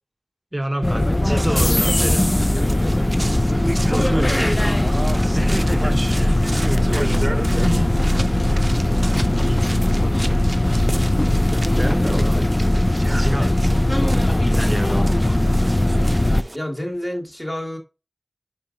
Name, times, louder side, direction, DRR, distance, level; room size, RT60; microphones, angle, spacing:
voice 1, 0.5-2.2 2.5-2.8 3.9-4.8 5.3-7.9 8.4-9.0 9.4-10.4 11.8-12.4 13.2-15.1, right 1 dB, 30° right, 0.9 m, -30 dB
sound 1, 0.8-16.4, left 1 dB, 30° left, 0.4 m, -19 dB
sound 2, 1.3-16.6, right 1 dB, 50° right, 0.5 m, -33 dB
voice 2, 3.6-4.4 11.7-12.4 13.4-13.5 16.5-17.8, equal, 15° left, 2.3 m, -29 dB
4.8 x 4.5 x 5.4 m
wide cardioid pair, 45°, 0 cm